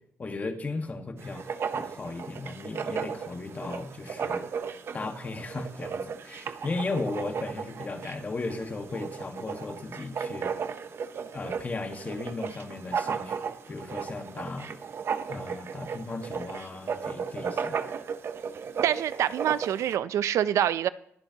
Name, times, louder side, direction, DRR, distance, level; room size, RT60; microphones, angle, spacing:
voice 1, 0.2-4.5 4.9-10.5 11.3-14.8 15.3-17.8, left 3 dB, 35° left, 5 dB, 1.5 m, -36 dB
Writing, 1.2-20.0, right 6 dB, 55° right, 0.8 m, -35 dB
voice 2, 18.8-20.9, right 10 dB, 85° right, 16 dB, 0.4 m, -26 dB
22.5 x 9.9 x 2.9 m, 0.73 s
cardioid pair, 110°, 5 cm